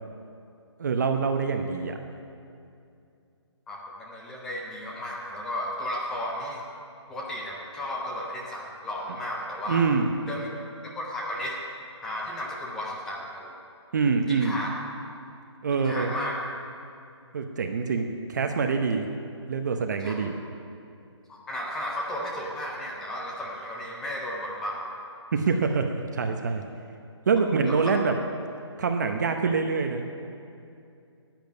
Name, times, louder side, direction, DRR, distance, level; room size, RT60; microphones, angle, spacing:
voice 1, 0.8-2.0 9.7-10.1 13.9-14.6 15.6-16.1 17.3-19.1 19.5-20.4 25.3-26.6 27.3-28.1 28.8-30.1, right 5 dB, 40° right, 5 dB, 0.8 m, -25 dB
voice 2, 3.7-6.6 7.1-9.9 10.3-10.5 10.8-11.6 12.0-13.5 14.3-14.7 15.8-16.3 20.0-20.2 21.3-24.9 27.7-27.8, left 1 dB, 5° left, -2 dB, 0.4 m, -34 dB
10.5 x 9.0 x 9.4 m, 2.5 s
hypercardioid pair, 165°, 15 cm